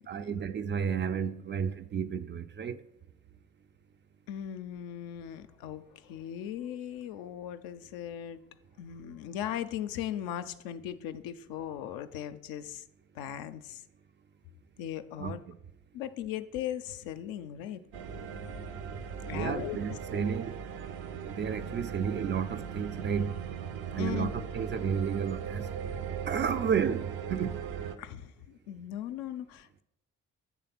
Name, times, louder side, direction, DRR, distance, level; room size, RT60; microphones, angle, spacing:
voice 1, 0.1-2.8 15.2-15.3 19.3-20.6 21.2-23.4 23.9-25.7 26.3-27.6, right 7 dB, 30° right, 0.4 m, -32 dB
voice 2, 4.3-8.4 8.8-12.9 13.1-13.8 14.8-15.4 15.9-17.8 19.2-20.3 24.0-24.4 28.0-29.8, left 10 dB, 65° left, 0.5 m, -38 dB
sound 1, 17.9-28.0, right 7 dB, 65° right, 0.6 m, -38 dB
8.5 x 3.4 x 5.8 m
figure-of-eight pair, 40°, 39 cm